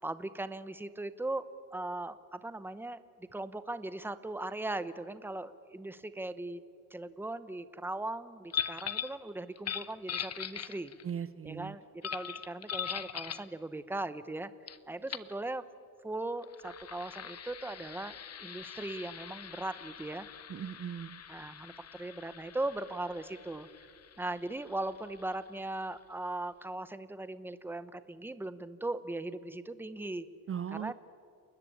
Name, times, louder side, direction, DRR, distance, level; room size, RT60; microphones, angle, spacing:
voice 1, 0.0-6.6 6.9-10.9 11.4-14.5 14.9-15.6 16.0-20.3 21.3-23.9 24.2-30.3 30.7-30.9, right 2 dB, 5° right, 13 dB, 0.8 m, -39 dB
sound 1, 8.5-9.2 9.6-11.1 12.0-13.5 14.7-14.8 15.1-15.3 16.4-25.7, left 8 dB, 45° left, 0.9 m, -41 dB
voice 2, 11.0-11.7 20.5-21.2 30.5-30.9, right 8 dB, 40° right, 14 dB, 0.5 m, -38 dB
29.0 x 20.0 x 8.6 m, 2.3 s
wide cardioid pair, 150°, 36 cm